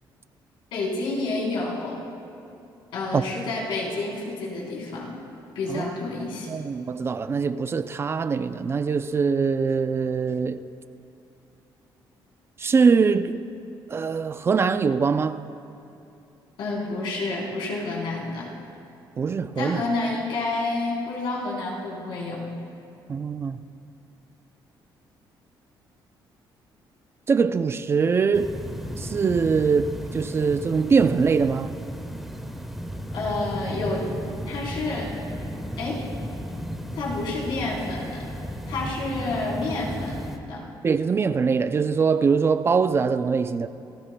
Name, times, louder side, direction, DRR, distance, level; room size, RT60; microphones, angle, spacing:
voice 1, 0.7-2.0 2.9-5.1 5.5-6.5 16.6-18.5 19.6-22.4 33.1-34.0 34.4-35.1 35.8-36.0 36.9-38.2 38.7-40.2 40.5-40.7, left 2 dB, 80° left, 3.9 m, -29 dB
voice 2, 6.5-10.7 12.6-13.4 13.9-15.4 19.2-19.8 23.1-23.6 27.3-28.6 29.0-31.7 40.8-43.7, right 5 dB, 30° right, 0.4 m, -22 dB
sound 1, 28.3-40.4, equal, ahead, 1.1 m, -34 dB
27.5 x 15.0 x 2.2 m
cardioid pair, 125°, 9 cm